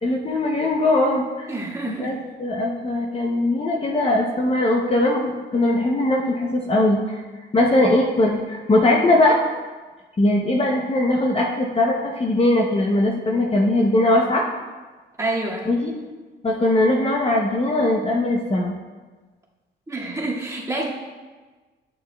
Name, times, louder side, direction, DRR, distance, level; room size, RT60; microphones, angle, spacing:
voice 1, 0.0-1.5 1.9-7.2 7.5-9.4 10.2-14.4 15.7-15.9 16.4-18.7, left 1 dB, 30° left, 0 dB, 0.8 m, -20 dB
voice 2, 1.5-2.1 15.2-15.7 19.9-20.9, right 2 dB, 15° right, -6 dB, 2.1 m, -27 dB
11.0 x 6.6 x 2.3 m, 1.3 s
cardioid pair, 90°, 20 cm